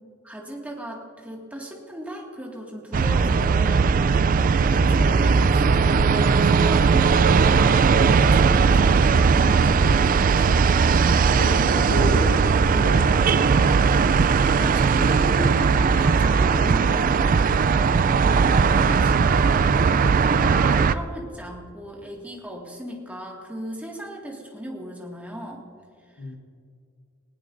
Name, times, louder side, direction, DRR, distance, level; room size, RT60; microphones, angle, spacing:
voice 1, 0.2-10.7 14.5-15.6 15.9-17.6 18.4-19.8 20.2-25.6 26.1-26.2, right 1 dB, 5° right, -2 dB, 2.0 m, -36 dB
sound 1, 2.9-20.9, right 5 dB, 40° right, 0.3 m, -18 dB
voice 2, 11.3-13.2 26.2-26.4, left 1 dB, 55° left, 1 dB, 1.0 m, -31 dB
19.5 x 17.5 x 2.6 m, 2.2 s
head